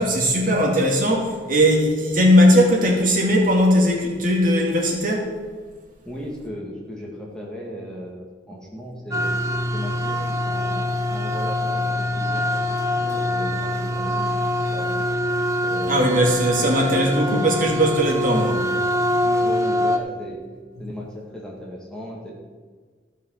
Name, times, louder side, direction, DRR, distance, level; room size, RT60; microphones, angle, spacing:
voice 1, 0.0-5.4 15.9-18.7, equal, 50° right, 0 dB, 2.5 m, -19 dB
voice 2, 6.0-9.3 9.7-15.1 15.6-16.2 16.6-17.5 19.2-20.4 20.8-22.3, equal, 5° left, -3 dB, 2.1 m, -36 dB
sound 1, 9.1-20.0, left 1 dB, 15° right, 0.9 m, -24 dB
14.5 x 6.3 x 6.6 m, 1.5 s
head